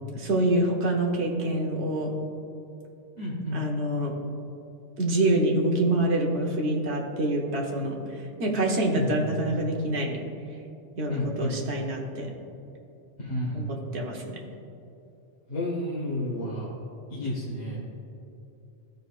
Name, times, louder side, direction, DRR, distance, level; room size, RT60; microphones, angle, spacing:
voice 1, 0.2-2.1 3.5-4.1 5.0-8.0 8.4-10.2 11.0-12.3 13.5-14.4, right 1 dB, 65° right, 0 dB, 1.3 m, -26 dB
voice 2, 3.2-3.6 8.9-9.3 11.1-11.5 13.2-13.7 15.5-16.7 17.1-17.8, left 1 dB, 55° left, -9 dB, 1.9 m, -31 dB
15.0 x 5.1 x 2.4 m, 2.7 s
omnidirectional pair, 1.2 m